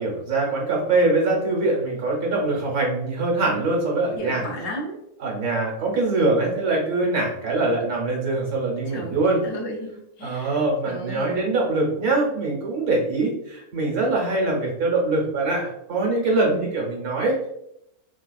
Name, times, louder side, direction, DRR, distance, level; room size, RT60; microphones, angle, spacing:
voice 1, 0.0-4.4 5.2-9.4 10.2-17.5, right 2 dB, 85° right, -1 dB, 1.5 m, -23 dB
voice 2, 4.2-5.0 8.9-9.9 10.2-10.5 10.9-11.4 16.5-16.7, right 1 dB, 65° left, 0 dB, 1.1 m, -33 dB
3.8 x 2.4 x 2.3 m, 0.79 s
omnidirectional pair, 1.6 m